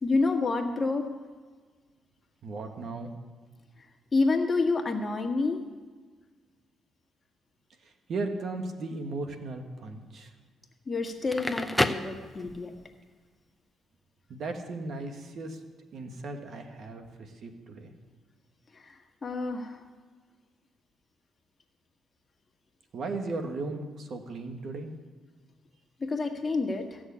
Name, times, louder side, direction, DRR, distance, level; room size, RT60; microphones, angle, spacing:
voice 1, 0.0-1.1 4.1-5.6 10.9-12.7 18.7-18.9 19.2-19.8 26.0-27.0, left 3 dB, 30° left, 3 dB, 1.6 m, -28 dB
voice 2, 2.4-3.1 7.8-10.3 14.3-15.6 15.9-17.9 22.9-24.9, right 3 dB, 60° right, 5 dB, 1.6 m, -36 dB
Crackle, 11.1-12.8, left 1 dB, 5° left, 0.7 m, -30 dB
15.5 x 6.4 x 8.5 m, 1.4 s
cardioid pair, 90°, 0 cm